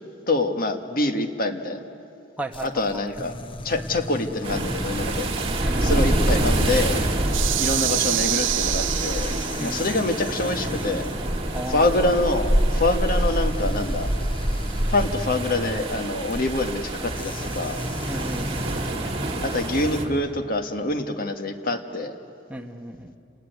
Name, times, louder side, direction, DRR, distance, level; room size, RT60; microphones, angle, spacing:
voice 1, 0.3-1.8 2.6-3.3 3.6-5.3 5.8-7.1 7.6-11.1 11.7-14.1 14.9-17.8 19.4-22.2, left 2 dB, 50° left, 6 dB, 1.7 m, -25 dB
voice 2, 2.4-3.0 5.6-6.2 9.6-10.2 11.5-12.1 18.1-18.6 22.5-23.1, right 1 dB, 10° right, 2 dB, 1.5 m, -35 dB
sound 1, 2.5-18.9, left 2 dB, 30° left, 0.7 m, -38 dB
sound 2, 4.4-20.1, right 1 dB, 30° right, 2.4 m, -26 dB
sound 3, 7.3-9.8, right 14 dB, 90° right, 0.6 m, -26 dB
29.5 x 20.0 x 9.4 m, 2.6 s
head